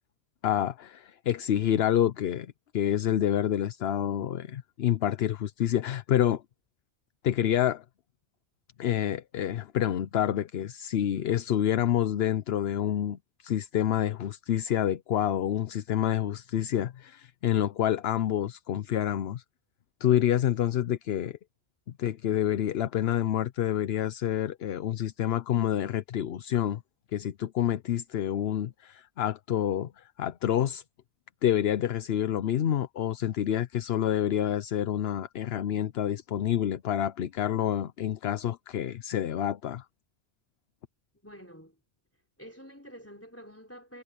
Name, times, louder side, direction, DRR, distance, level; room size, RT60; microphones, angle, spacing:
voice 1, 0.4-6.4 7.2-7.8 8.8-19.4 20.0-21.4 22.0-26.8 27.1-30.8 31.4-39.8, left 11 dB, 75° left, 0.9 m, -28 dB
voice 2, 41.2-41.7 42.4-44.0, equal, 15° left, 3.9 m, -48 dB
omnidirectional pair, 1.0 m